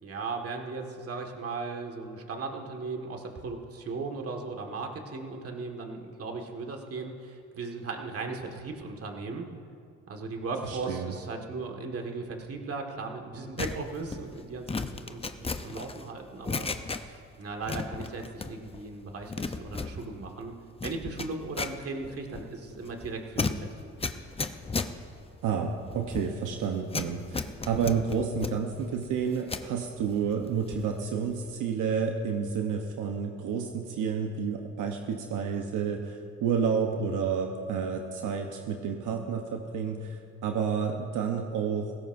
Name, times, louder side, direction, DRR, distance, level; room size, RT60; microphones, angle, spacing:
voice 1, 0.0-9.5 10.1-15.3 15.6-20.5 20.8-23.6, right 3 dB, 50° right, 2 dB, 1.8 m, -37 dB
voice 2, 10.6-11.1 25.4-41.9, right 6 dB, 85° right, 3 dB, 1.0 m, -30 dB
sound 1, 13.6-17.3 17.6-18.8 19.1-29.7 30.1-31.0 31.2-31.5, left 4 dB, 20° left, 0.7 m, -35 dB
19.5 x 16.5 x 2.7 m, 2.3 s
cardioid pair, 90°, 30 cm